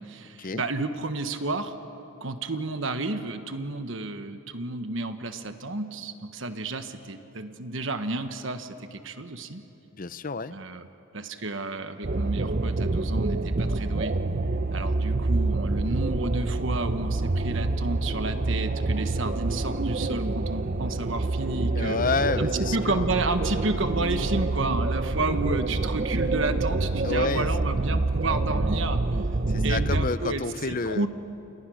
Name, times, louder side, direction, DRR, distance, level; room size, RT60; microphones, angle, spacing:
voice 1, 0.0-1.8 2.2-9.6 10.5-10.9 11.1-14.2 14.7-22.0 22.4-29.0 29.6-31.1, right 2 dB, 65° right, 8 dB, 1.3 m, -31 dB
voice 2, 10.0-10.5 21.8-23.1 27.0-27.5 29.5-31.1, left 4 dB, 40° left, 14 dB, 0.7 m, -29 dB
sound 1, 12.0-30.1, right 2 dB, 45° right, 0.7 m, -27 dB
29.5 x 28.5 x 6.4 m, 2.9 s
head